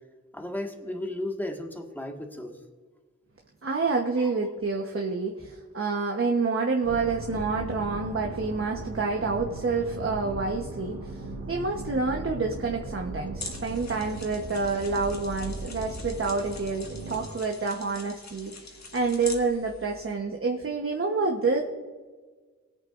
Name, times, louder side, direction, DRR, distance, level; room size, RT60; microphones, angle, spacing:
voice 1, 0.3-2.6 4.2-4.3, left 1 dB, 5° left, 2 dB, 1.8 m, -34 dB
voice 2, 3.6-11.2 11.5-21.6, right 4 dB, 45° right, 1 dB, 1.1 m, -28 dB
sound 1, 6.8-17.3, right 2 dB, 85° right, 1.5 m, -38 dB
sound 2, 13.4-20.1, left 3 dB, 70° left, 1.9 m, -44 dB
21.0 x 8.8 x 2.6 m, 1.4 s
wide cardioid pair, 75°, 29 cm